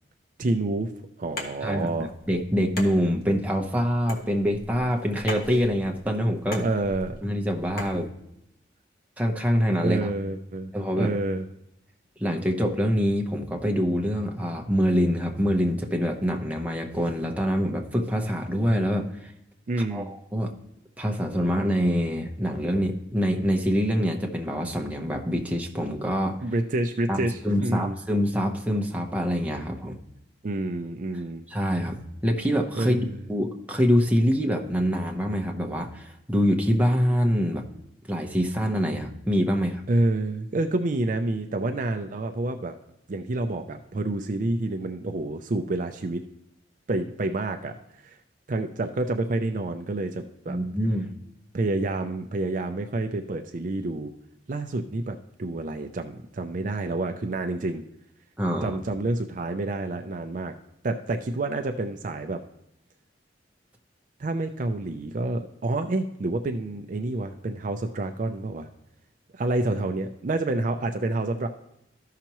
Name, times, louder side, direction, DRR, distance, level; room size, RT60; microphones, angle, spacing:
voice 1, 0.4-0.9 1.2-2.1 6.6-7.2 9.8-11.5 19.7-20.1 26.4-28.0 30.4-31.4 32.7-33.2 39.9-42.8 43.1-46.2 46.9-47.8 48.0-48.2 48.5-50.6 51.5-54.1 54.5-57.8 58.6-60.5 60.8-62.4 64.2-68.7 69.3-71.5, right 2 dB, 45° right, 5 dB, 0.5 m, -28 dB
sound 1, 1.2-8.0, left 1 dB, 55° left, 1.4 m, -40 dB
voice 2, 2.3-6.6 7.2-8.1 9.2-10.0 10.7-11.1 12.2-19.3 19.8-20.5 21.0-26.4 27.1-30.0 31.5-37.6 38.1-39.8 50.5-51.1 58.4-58.8, equal, 10° right, 2 dB, 0.8 m, -25 dB
13.5 x 5.8 x 3.0 m, 0.81 s
head